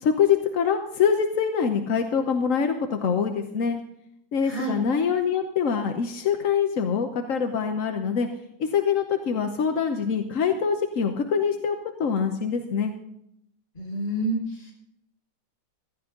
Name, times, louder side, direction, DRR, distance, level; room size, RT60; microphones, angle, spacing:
voice 1, 0.0-3.8 4.3-8.3 8.6-12.9, left 6 dB, 55° left, 5 dB, 0.9 m, -24 dB
voice 2, 4.4-4.8 13.7-14.7, right 1 dB, 20° left, -2 dB, 5.3 m, -29 dB
15.5 x 13.0 x 3.8 m, 0.78 s
omnidirectional pair, 2.4 m